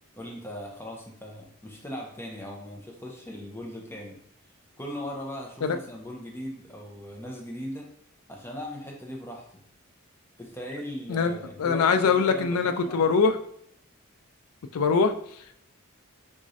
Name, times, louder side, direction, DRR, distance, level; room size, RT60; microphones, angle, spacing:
voice 1, 0.2-4.2 4.8-7.9 8.3-9.4 10.4-13.1, equal, 10° left, -1 dB, 0.6 m, -39 dB
voice 2, 11.1-13.4 14.7-15.5, left 5 dB, 85° left, 8 dB, 0.4 m, -23 dB
3.6 x 3.0 x 2.6 m, 0.67 s
head